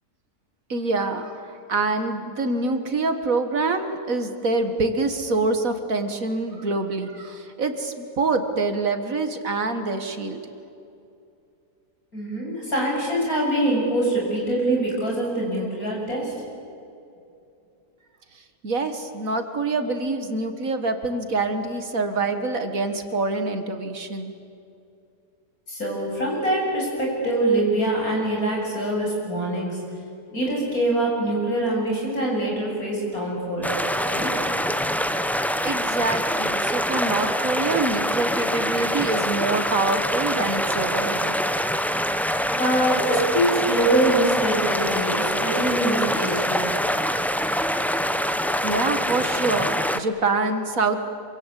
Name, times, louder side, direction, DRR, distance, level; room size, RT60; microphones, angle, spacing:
voice 1, 0.7-10.5 18.6-24.3 35.6-41.4 48.6-51.0, right 3 dB, 55° right, 7 dB, 2.0 m, -26 dB
voice 2, 12.1-16.3 25.7-29.8 30.3-33.7 34.0-34.7 42.5-46.8, right 1 dB, 60° left, -2 dB, 8.0 m, -24 dB
sound 1, 33.6-50.0, equal, ahead, 0.6 m, -25 dB
26.5 x 25.0 x 8.4 m, 2.6 s
omnidirectional pair, 1.7 m